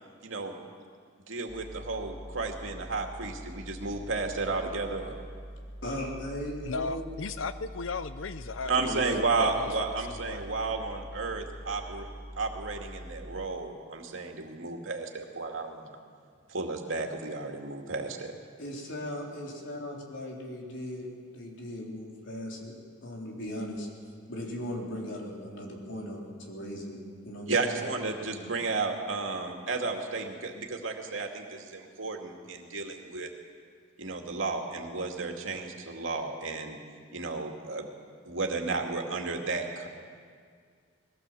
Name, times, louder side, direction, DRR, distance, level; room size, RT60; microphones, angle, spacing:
voice 1, 0.2-0.6 1.3-5.2 8.6-12.1 12.4-16.0 16.5-18.3 27.5-33.3 34.0-36.8 37.1-37.9 38.3-39.9, right 3 dB, 85° right, 2 dB, 2.4 m, -33 dB
sound 1, 1.5-13.5, equal, 10° right, 4.6 m, -44 dB
voice 2, 5.8-7.0 8.8-9.2 18.6-21.1 21.3-22.7 23.0-23.9 24.3-27.0 27.2-27.8, left 1 dB, 70° left, -1 dB, 4.0 m, -38 dB
voice 3, 6.6-9.0 9.3-9.7 10.0-10.4, left 4 dB, 90° left, 12 dB, 0.6 m, -36 dB
21.0 x 16.5 x 7.7 m, 2.1 s
head